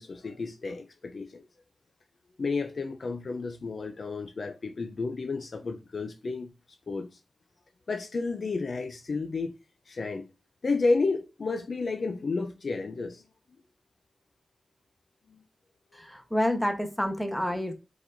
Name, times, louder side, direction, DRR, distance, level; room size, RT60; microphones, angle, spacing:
voice 1, 0.0-1.4 2.4-6.5 6.9-7.2 7.9-9.5 9.9-10.3 10.6-13.2 15.3-15.4, left 3 dB, 55° left, 0.4 m, -31 dB
voice 2, 15.9-17.7, equal, 5° left, 0.9 m, -28 dB
4.4 x 4.0 x 2.5 m
wide cardioid pair, 85°, 0 cm